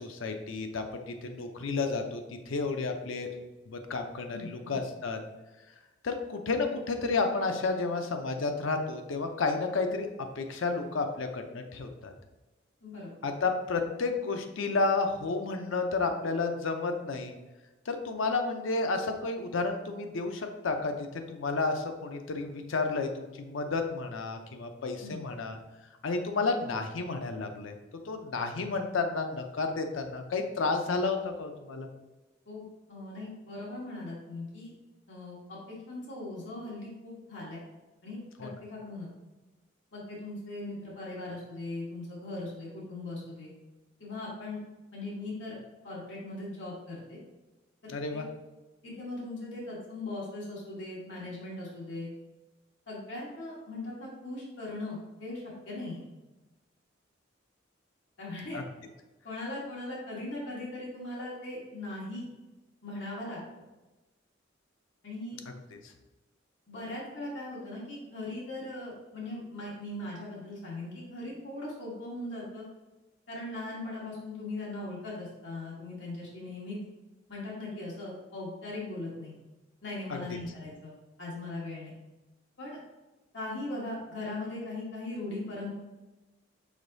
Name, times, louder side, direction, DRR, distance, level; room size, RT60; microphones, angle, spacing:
voice 1, 0.0-3.3 3.7-5.2 6.0-10.1 10.4-12.1 13.2-17.3 17.9-25.6 26.0-27.8 28.0-31.9 38.4-38.5 47.9-48.3 58.5-58.6 65.7-65.8 80.1-80.4, left 3 dB, 85° left, 5 dB, 0.5 m, -31 dB
voice 2, 4.3-4.8 12.8-13.1 25.0-25.2 32.5-32.6 32.9-34.7 35.1-37.6 38.0-39.1 39.9-43.5 44.0-44.6 44.9-45.6 45.8-47.2 47.8-48.2 48.8-52.1 52.9-56.0 58.2-58.6 59.2-62.3 62.8-63.4 65.0-65.4 66.7-72.6 73.3-76.8 77.3-79.4 79.8-82.0 82.6-82.8 83.3-85.7, left 2 dB, 65° left, -5 dB, 1.3 m, -39 dB
5.1 x 3.7 x 2.6 m, 1.1 s
head